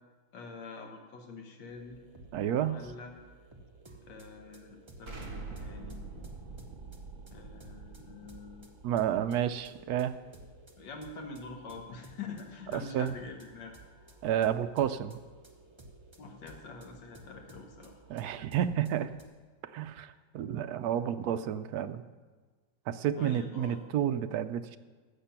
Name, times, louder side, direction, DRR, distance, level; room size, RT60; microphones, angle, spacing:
voice 1, 0.3-2.0 2.5-3.1 4.0-6.0 7.3-8.7 10.8-13.8 16.2-17.9 20.1-20.2 23.2-23.8, left 4 dB, 70° left, 2 dB, 1.9 m, -45 dB
sound 1, 1.7-19.2, right 2 dB, 20° right, 0.8 m, -55 dB
voice 2, 2.3-2.8 8.8-10.1 12.7-13.1 14.2-15.2 18.1-19.1 19.7-22.0 22.9-24.8, right 10 dB, 75° right, 10 dB, 0.9 m, -30 dB
Explosion, 5.1-9.9, right 3 dB, 40° right, 2.1 m, -45 dB
13.5 x 8.1 x 5.8 m, 1.4 s
omnidirectional pair, 2.1 m